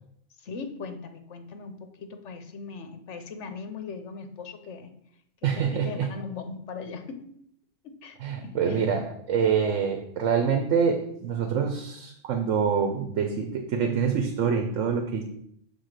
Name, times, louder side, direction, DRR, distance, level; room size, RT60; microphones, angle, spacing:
voice 1, 0.4-4.9 5.4-7.3 7.8-8.8, left 5 dB, 70° left, 7 dB, 1.2 m, -39 dB
voice 2, 5.4-6.1 8.2-15.2, right 6 dB, 90° right, 5 dB, 1.2 m, -26 dB
6.7 x 4.0 x 6.5 m, 0.71 s
omnidirectional pair, 1.3 m